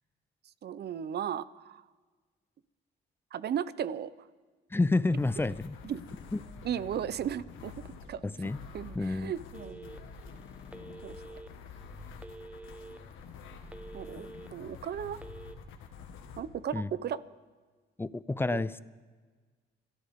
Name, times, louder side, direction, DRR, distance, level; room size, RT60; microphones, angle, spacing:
voice 1, 0.6-1.8 3.3-4.1 5.8-6.0 6.6-7.7 8.1-8.2 8.7-10.0 11.0-11.2 13.9-15.2 16.4-17.2 18.5-18.8, right 9 dB, 55° right, 17 dB, 0.7 m, -35 dB
voice 2, 4.7-5.7 6.3-6.4 8.2-8.6 8.9-9.3 16.7-16.9 18.0-18.8, left 2 dB, 10° left, 17 dB, 0.5 m, -29 dB
sound 1, 5.0-16.4, left 5 dB, 90° left, 1.7 m, -48 dB
Telephone, 9.5-10.2 10.7-11.5 12.2-13.0 13.4-14.5 15.1-15.5, right 2 dB, 5° right, 0.8 m, -47 dB
28.5 x 13.0 x 3.7 m, 1.4 s
cardioid pair, 90°, 20 cm